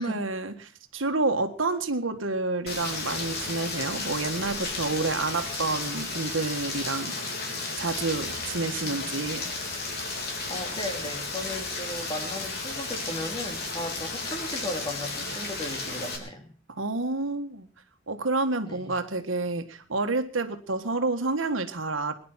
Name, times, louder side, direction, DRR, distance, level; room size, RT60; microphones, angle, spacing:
voice 1, 0.0-7.2 7.8-9.5 16.7-17.7 18.1-22.1, right 3 dB, 80° right, 7 dB, 1.6 m, -29 dB
Rain, 2.7-16.2, left 3 dB, 55° left, 4.0 m, -33 dB
voice 2, 8.7-9.2 10.5-16.5 18.7-19.0, left 1 dB, 25° left, 4 dB, 2.8 m, -36 dB
21.5 x 10.5 x 5.8 m, 0.43 s
head